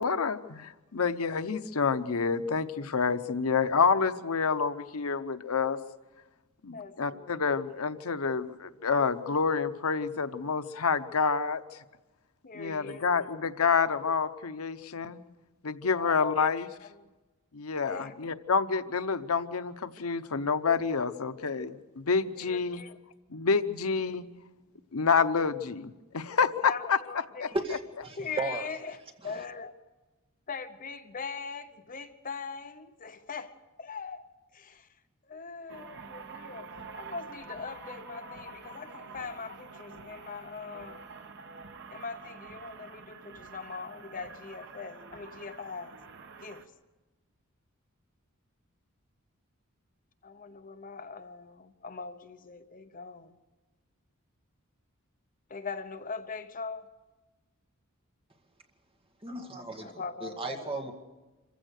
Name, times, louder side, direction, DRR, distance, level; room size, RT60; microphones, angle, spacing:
voice 1, 0.0-5.8 6.6-11.6 12.5-15.2 15.6-16.7 17.5-22.8 23.3-24.2 24.9-27.0 27.4-27.5, left 5 dB, 85° left, 0.8 m, -28 dB
voice 2, 6.7-7.5 12.4-13.1 16.0-16.5 16.8-17.1 17.9-18.2 22.4-23.0 26.7-27.6 28.2-29.8 30.5-34.9 35.3-41.0 41.9-45.9 46.4-46.7 50.2-53.4 55.5-56.9 59.8-60.9, left 5 dB, 40° left, 0.9 m, -41 dB
voice 3, 27.5-28.7 29.2-29.4 59.2-60.9, right 2 dB, 25° right, 2.0 m, -35 dB
sound 1, 35.7-46.7, right 4 dB, 55° right, 1.2 m, -47 dB
26.5 x 15.5 x 6.5 m
head